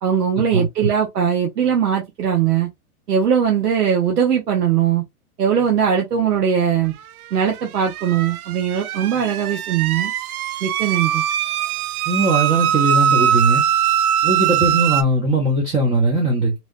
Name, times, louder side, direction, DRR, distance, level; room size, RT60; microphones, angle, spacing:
voice 1, 0.0-2.7 3.1-5.0 5.4-6.9 7.3-10.1 10.6-11.2, right 8 dB, 85° right, 0.9 m, -20 dB
sound 1, 7.4-15.0, right 10 dB, 70° right, 0.5 m, -21 dB
voice 2, 12.1-13.6 14.2-16.5, right 2 dB, 15° right, 0.6 m, -19 dB
3.0 x 2.9 x 2.4 m
hypercardioid pair, 120°, 46 cm